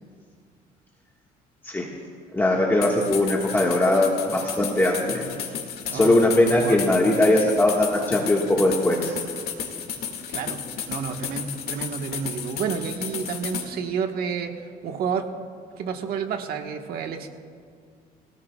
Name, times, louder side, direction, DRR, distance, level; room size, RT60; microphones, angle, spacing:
voice 1, 2.3-5.3 5.9-9.1, left 1 dB, 15° left, -3 dB, 1.6 m, -20 dB
sound 1, 2.8-13.7, left 8 dB, 70° left, 2.1 m, -33 dB
voice 2, 10.3-10.6 10.9-14.6 14.8-15.2 15.7-17.3, right 6 dB, 70° right, 4 dB, 1.4 m, -30 dB
26.5 x 17.5 x 2.4 m, 2.2 s
cardioid pair, 125°, 17 cm